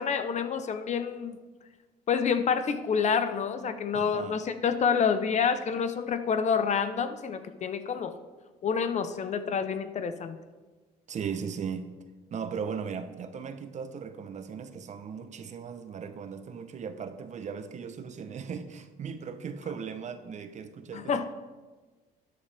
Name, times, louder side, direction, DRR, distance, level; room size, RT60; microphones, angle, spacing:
voice 1, 0.0-1.3 2.1-8.1 8.6-10.4 20.9-21.3, left 6 dB, 45° left, 10 dB, 0.8 m, -28 dB
voice 2, 3.9-4.4 11.1-11.9 12.3-21.3, right 6 dB, 45° right, 10 dB, 0.9 m, -37 dB
12.5 x 9.9 x 3.5 m, 1.3 s
cardioid pair, 110°, 17 cm